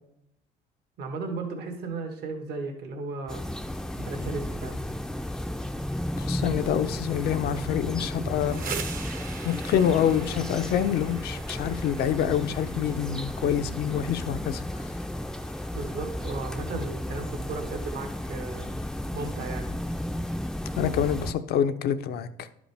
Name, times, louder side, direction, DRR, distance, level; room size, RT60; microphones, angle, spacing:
voice 1, 1.0-3.4 4.0-4.8 15.7-18.7 19.1-19.7, right 3 dB, 70° right, 3 dB, 1.5 m, -35 dB
sound 1, 3.3-21.3, left 1 dB, 5° left, 0.4 m, -33 dB
voice 2, 6.2-8.7 9.4-14.9 20.7-22.5, left 9 dB, 70° left, 10 dB, 0.6 m, -27 dB
sound 2, 8.2-17.9, right 7 dB, 55° right, 1.0 m, -44 dB
11.0 x 5.1 x 3.4 m, 0.80 s
cardioid pair, 110°, 17 cm